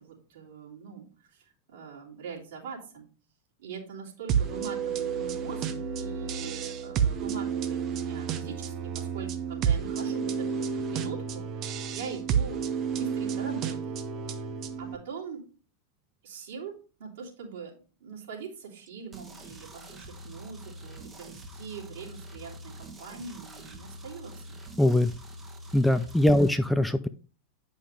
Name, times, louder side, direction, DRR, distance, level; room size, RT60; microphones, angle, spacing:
voice 1, 0.0-3.1 3.6-5.7 6.0-13.9 14.8-15.4 16.2-16.7 17.0-17.7 18.0-24.6 26.3-26.5, right 5 dB, 60° right, -3 dB, 3.2 m, -42 dB
sound 1, 4.3-14.9, right 7 dB, 35° right, 0.8 m, -30 dB
sound 2, 19.1-26.5, equal, 15° right, 1.3 m, -45 dB
voice 2, 24.8-25.1 25.7-27.1, left 1 dB, 5° left, 11 dB, 0.4 m, -22 dB
9.7 x 5.5 x 3.2 m, 0.37 s
figure-of-eight pair, 90°, 0 cm